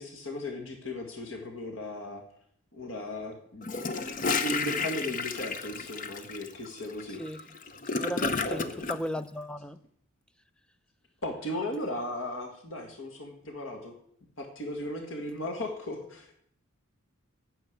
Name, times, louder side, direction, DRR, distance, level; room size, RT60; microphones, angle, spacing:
voice 1, 0.0-2.2 2.7-3.8 4.4-7.2 8.3-8.7 11.2-13.9 14.4-16.3, left 1 dB, 65° left, 1.8 m, -36 dB
Gurgling / Toilet flush, 3.6-9.0, left 4 dB, 35° left, 0.7 m, -32 dB
voice 2, 8.0-9.8, equal, 5° left, 0.4 m, -35 dB
9.3 x 7.0 x 8.1 m
head